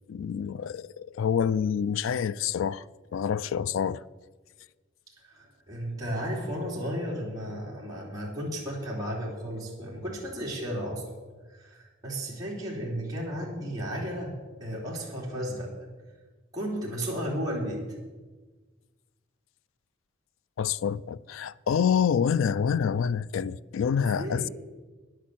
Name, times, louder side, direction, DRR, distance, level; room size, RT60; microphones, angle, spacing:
voice 1, 0.1-2.8 3.1-4.0 20.6-24.5, left 7 dB, 70° left, 0.3 m, -27 dB
voice 2, 5.2-11.0 11.5-15.7 16.5-17.8 24.0-24.5, equal, 20° right, 3.2 m, -34 dB
10.5 x 8.3 x 7.6 m
head